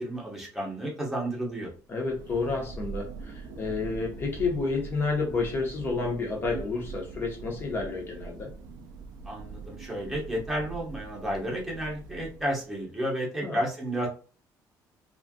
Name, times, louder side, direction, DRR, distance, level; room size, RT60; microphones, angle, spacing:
voice 1, 0.0-1.7 9.2-14.1, right 1 dB, 5° right, -2 dB, 1.0 m, -32 dB
Thunder, 1.8-12.8, right 4 dB, 70° right, 0.4 m, -42 dB
voice 2, 1.9-8.5 13.4-13.6, left 4 dB, 30° left, 0 dB, 1.0 m, -30 dB
3.2 x 2.5 x 2.3 m, 0.38 s
cardioid pair, 155°, 7 cm